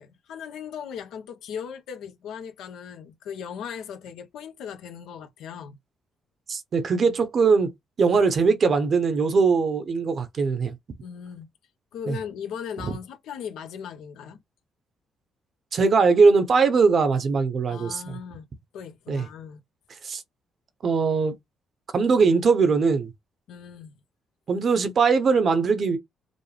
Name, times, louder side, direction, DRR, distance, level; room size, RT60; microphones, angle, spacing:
voice 1, 0.0-5.8 11.0-11.5 11.9-14.4 17.7-18.4 18.7-19.6 23.5-23.9, left 7 dB, 85° left, 1.0 m, -38 dB
voice 2, 6.5-7.7 8.0-10.8 12.1-12.2 15.7-18.2 19.1-19.3 20.0-20.2 20.8-21.3 21.9-23.1 24.5-26.0, right 4 dB, 50° right, 0.9 m, -21 dB
5.3 x 2.0 x 3.3 m
cardioid pair, 90°, 0 cm